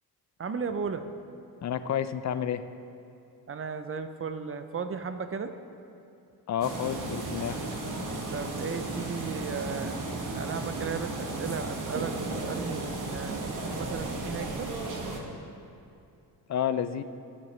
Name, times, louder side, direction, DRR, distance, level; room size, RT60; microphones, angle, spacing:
voice 1, 0.4-1.1 3.5-5.5 8.3-10.0 10.3-14.7, right 5 dB, 35° right, 9 dB, 0.6 m, -35 dB
voice 2, 1.6-2.6 6.5-7.6 16.5-17.0, left 9 dB, 45° left, 12 dB, 0.5 m, -30 dB
sound 1, 6.6-15.2, right 2 dB, 50° right, 1.4 m, -34 dB
15.0 x 7.3 x 3.3 m, 2.6 s
cardioid pair, 100°, 40 cm